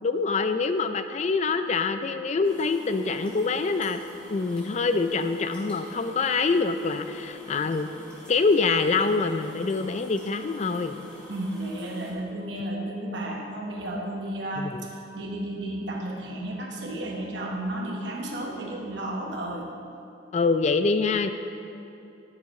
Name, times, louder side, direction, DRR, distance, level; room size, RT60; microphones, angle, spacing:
voice 1, 0.0-4.0 4.3-7.9 8.3-11.0 14.6-14.9 20.3-21.3, left 4 dB, 35° left, 9 dB, 0.3 m, -25 dB
sound 1, 2.4-12.1, equal, 10° left, 2.0 m, -47 dB
voice 2, 11.3-19.7, right 1 dB, 60° right, -1 dB, 1.1 m, -33 dB
10.5 x 7.3 x 4.8 m, 2.7 s
head